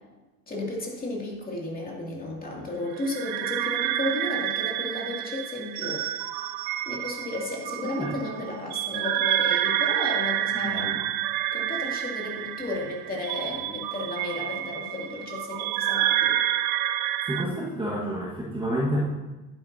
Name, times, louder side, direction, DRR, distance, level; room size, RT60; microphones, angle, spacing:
voice 1, 0.5-6.0 6.8-10.9 11.5-16.4, left 2 dB, 20° left, -3 dB, 2.5 m, -33 dB
sound 1, 3.0-17.4, right 12 dB, 55° right, 0.6 m, -28 dB
voice 2, 10.6-11.0 17.2-19.1, equal, 10° right, -6 dB, 1.5 m, -29 dB
11.0 x 9.2 x 2.7 m, 1.1 s
cardioid pair, 130°, 43 cm